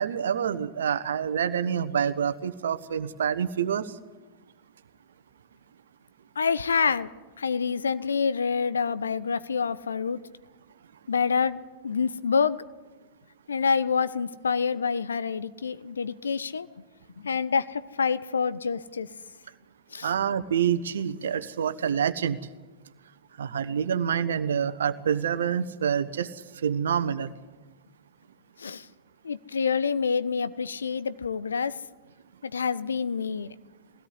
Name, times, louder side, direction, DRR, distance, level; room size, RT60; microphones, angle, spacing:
voice 1, 0.0-3.9 20.0-22.4 23.4-26.3 26.6-27.3, right 8 dB, 70° right, 12 dB, 1.2 m, -27 dB
voice 2, 6.3-7.1 7.4-10.2 11.1-12.6 13.5-16.7 17.2-19.1 19.9-20.1 28.6-28.9 29.2-31.8 32.4-33.5, left 5 dB, 75° left, 15 dB, 0.9 m, -27 dB
22.0 x 17.0 x 9.8 m, 1.2 s
figure-of-eight pair, 95°, 0 cm